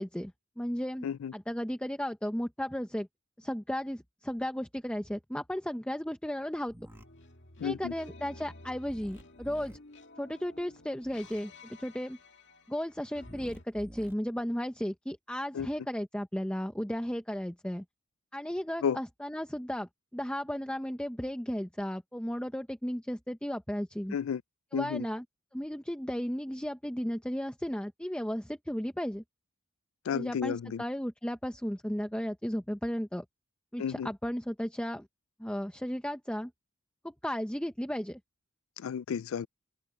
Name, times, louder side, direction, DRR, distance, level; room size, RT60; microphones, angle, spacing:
voice 1, 0.0-1.1 1.3-3.1 3.4-6.7 7.6-9.8 10.2-12.2 12.7-17.8 18.3-24.2 24.7-25.2 25.5-29.2 30.1-33.2 33.7-35.1 35.4-36.5 37.0-38.2, equal, 5° left, 0.8 m, -34 dB
voice 2, 1.0-1.3 7.6-7.9 15.5-15.7 18.8-19.0 24.1-24.4 24.7-25.1 30.1-30.8 33.8-34.1 38.8-39.5, left 7 dB, 80° left, 0.4 m, -32 dB
sound 1, 6.7-7.0 8.8-9.8 11.0-11.4 13.2-14.1, equal, 10° right, 1.8 m, -49 dB
sound 2, 6.9-13.7, left 2 dB, 60° left, 2.2 m, -53 dB
open air
head